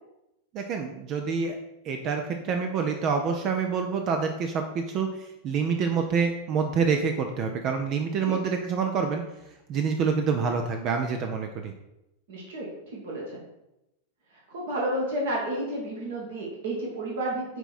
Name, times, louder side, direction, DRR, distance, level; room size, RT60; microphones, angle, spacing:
voice 1, 0.5-1.6 1.8-9.2 9.7-11.7, right 5 dB, 35° right, 5 dB, 0.6 m, -27 dB
voice 2, 12.3-13.4 14.5-17.6, right 1 dB, 55° right, -3 dB, 1.6 m, -31 dB
8.9 x 3.3 x 4.2 m, 0.90 s
figure-of-eight pair, 90°, 0 cm